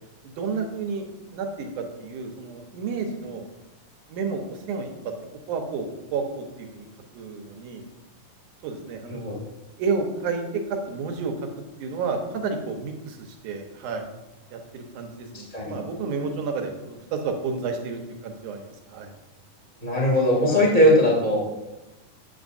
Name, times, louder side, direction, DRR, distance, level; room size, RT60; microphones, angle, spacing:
voice 1, 0.2-3.4 4.1-4.9 5.5-6.9 7.1-7.9 8.6-9.4 9.8-11.5 11.8-14.1 14.5-19.1 20.5-20.7, right 4 dB, 75° right, 4 dB, 2.3 m, -31 dB
voice 2, 15.3-15.7 19.8-21.5, equal, 30° right, -4 dB, 0.6 m, -20 dB
8.2 x 7.8 x 2.6 m, 1.0 s
omnidirectional pair, 3.8 m